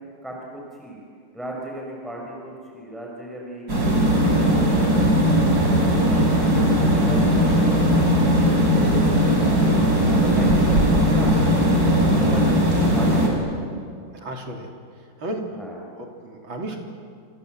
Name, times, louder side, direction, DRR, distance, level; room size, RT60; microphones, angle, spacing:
voice 1, 0.2-1.0 1.3-3.8 4.1-7.9 8.2-11.3 12.0-12.6 12.9-13.6 15.6-15.8, right 1 dB, ahead, -2 dB, 4.9 m, -36 dB
sound 1, 3.7-13.3, equal, 45° right, 5.5 m, -18 dB
voice 2, 11.0-11.5 14.1-14.7 15.2-15.4 16.0-16.8, right 1 dB, 70° right, 1 dB, 4.0 m, -33 dB
28.0 x 26.5 x 7.8 m, 2.2 s
omnidirectional pair, 2.3 m